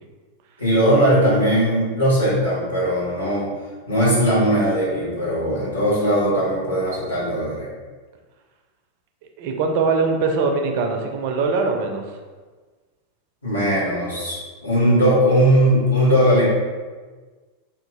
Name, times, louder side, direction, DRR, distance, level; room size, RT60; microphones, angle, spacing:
voice 1, 0.6-3.5 3.9-7.7 13.4-16.4, equal, 80° left, -9 dB, 1.4 m, -19 dB
voice 2, 9.4-12.0, right 4 dB, 50° right, 3 dB, 0.4 m, -22 dB
2.9 x 2.5 x 3.6 m, 1.4 s
figure-of-eight pair, 90°, 0 cm